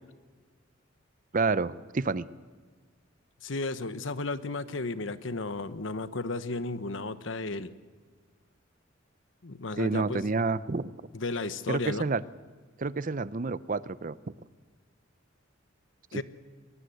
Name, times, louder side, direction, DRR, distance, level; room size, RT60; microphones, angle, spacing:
voice 1, 1.3-2.3 9.8-10.9 11.7-12.2 12.8-14.1, right 3 dB, 40° right, 17 dB, 0.6 m, -29 dB
voice 2, 3.4-7.7 9.4-10.3 11.1-12.1 16.1-16.2, left 3 dB, 70° left, 13 dB, 1.1 m, -34 dB
21.5 x 21.0 x 8.0 m, 1.5 s
head